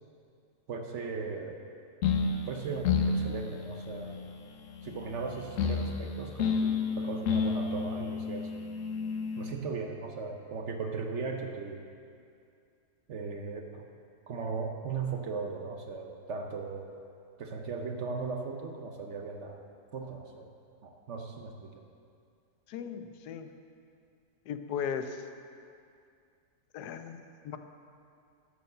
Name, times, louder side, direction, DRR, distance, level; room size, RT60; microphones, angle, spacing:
voice 1, 0.7-1.6 2.5-4.2 4.8-8.5 9.4-11.9 13.1-13.9 14.3-16.9 17.4-19.7 19.9-20.5 20.8-21.8, right 4 dB, 55° right, 3 dB, 0.9 m, -37 dB
sound 1, 2.0-9.5, left 5 dB, 60° left, 1.1 m, -31 dB
voice 2, 22.7-23.5 24.5-25.2 26.7-27.6, left 7 dB, 85° left, 8 dB, 1.2 m, -37 dB
11.0 x 6.8 x 6.6 m, 2.4 s
omnidirectional pair, 1.7 m